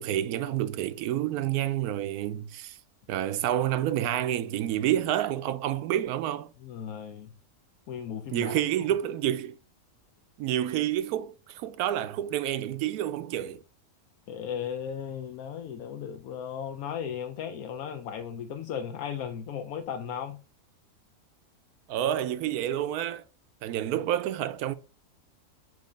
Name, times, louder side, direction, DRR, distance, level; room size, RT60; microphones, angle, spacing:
voice 1, 0.0-2.8 3.1-6.5 8.3-9.6 10.4-13.6 21.9-23.2 23.6-24.7, right 12 dB, 85° right, 1.1 m, -29 dB
voice 2, 6.6-7.3 7.9-8.6 14.3-20.4, left 8 dB, 75° left, 1.1 m, -36 dB
7.7 x 2.7 x 5.0 m
omnidirectional pair, 1.6 m